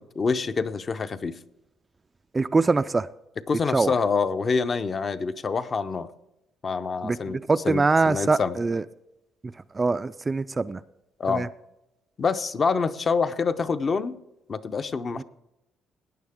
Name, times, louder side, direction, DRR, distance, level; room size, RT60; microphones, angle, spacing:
voice 1, 0.0-1.4 3.5-6.1 6.6-7.4 7.6-8.6 11.2-11.5 12.2-14.2 14.5-15.2, left 5 dB, 35° left, 11 dB, 0.6 m, -26 dB
voice 2, 2.3-3.1 3.7-3.9 7.0-7.2 7.5-8.8 9.7-10.8 11.3-11.5 15.2-15.3, right 3 dB, 20° right, 12 dB, 0.3 m, -23 dB
17.5 x 9.4 x 3.6 m, 0.90 s
cardioid pair, 130°, 0 cm